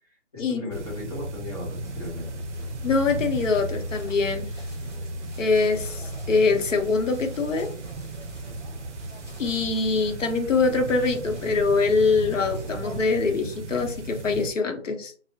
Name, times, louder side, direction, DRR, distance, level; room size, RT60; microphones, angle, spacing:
voice 1, 0.0-2.4, left 2 dB, 30° left, -5 dB, 1.0 m, -37 dB
sound 1, 0.7-14.5, right 2 dB, 70° right, 0.5 m, -35 dB
sound 2, 1.8-13.1, left 1 dB, 15° right, 0.6 m, -46 dB
voice 2, 2.8-4.5 5.4-7.7 9.4-15.1, left 4 dB, 90° left, 5 dB, 0.7 m, -24 dB
2.3 x 2.0 x 2.6 m, 0.44 s
hypercardioid pair, 170°, 37 cm